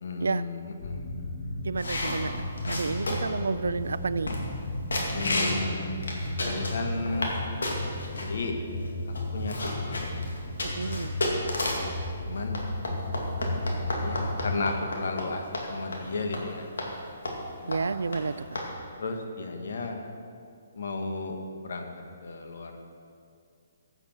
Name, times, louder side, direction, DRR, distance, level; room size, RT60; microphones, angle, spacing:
voice 1, 0.0-1.0 5.1-6.0 6.4-7.3 8.2-8.5 9.3-10.1 12.2-12.6 14.0-15.4 15.7-16.7 17.6-17.8 19.0-20.0 20.7-21.4 21.6-21.9 22.2-22.8, left 3 dB, 70° left, 4 dB, 1.5 m, -34 dB
sound 1, 0.8-14.7, left 1 dB, 45° left, 3.0 m, -34 dB
voice 2, 1.6-2.3 2.7-4.4 10.6-11.1 17.7-18.5, right 4 dB, 85° right, 16 dB, 0.4 m, -30 dB
sound 2, 1.8-3.4 3.9-4.0 4.3-4.6 4.9-5.6 6.0-7.4 7.6-8.3 8.9-9.0 9.1-11.9 12.5-15.3 15.5-15.7 15.9-16.0 16.3-16.5 16.8-16.9 17.3-17.5 17.7-17.8 18.1-18.2 18.6-18.7, left 2 dB, 85° left, 2.3 m, -31 dB
15.0 x 8.0 x 4.6 m, 2.4 s
hypercardioid pair, 150°, 0 cm